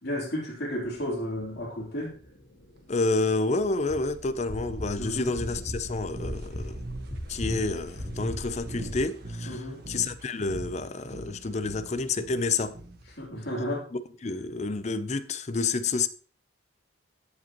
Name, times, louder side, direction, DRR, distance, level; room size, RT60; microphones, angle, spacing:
voice 1, 0.0-2.1 5.0-5.3 9.5-9.8 13.2-13.9, equal, 55° left, 3.1 m, -32 dB
sound 1, 0.7-9.0, equal, 80° left, 2.4 m, -40 dB
voice 2, 2.9-6.8 7.3-12.8 13.9-16.1, left 3 dB, 35° left, 0.5 m, -29 dB
sound 2, 5.3-13.3, right 1 dB, 50° right, 1.3 m, -41 dB
15.0 x 5.1 x 2.9 m
head